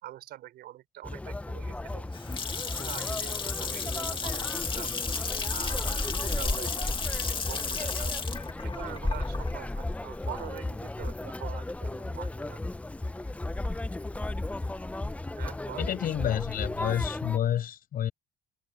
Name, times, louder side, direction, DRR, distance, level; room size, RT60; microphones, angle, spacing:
voice 1, 0.0-2.1 2.6-4.5 4.8-5.0 5.5-7.0 7.3-8.2 8.6-12.6 15.4-15.9, right 14 dB, 75° right, 4.0 m, -44 dB
Conversation, 1.0-17.4, left 2 dB, 10° left, 0.6 m, -34 dB
Water tap faucet / Sink (filling or washing) / Splash splatter, 1.9-10.8, left 5 dB, 30° left, 2.2 m, -34 dB
voice 2, 15.8-18.1, left 10 dB, 60° left, 7.1 m, -29 dB
cardioid pair, 110°, 17 cm